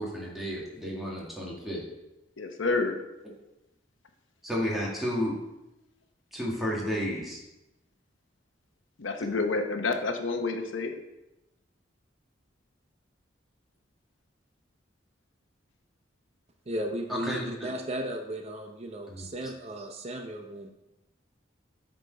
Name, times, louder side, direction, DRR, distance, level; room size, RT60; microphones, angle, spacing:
voice 1, 0.0-1.8 4.4-5.4 6.3-7.4 17.1-17.7 19.1-19.3, equal, ahead, -5 dB, 2.0 m, -32 dB
voice 2, 2.4-3.0 9.0-10.9, left 3 dB, 85° left, 6 dB, 0.8 m, -29 dB
voice 3, 16.7-20.7, right 1 dB, 35° right, 4 dB, 0.6 m, -35 dB
8.0 x 4.5 x 5.4 m, 0.93 s
head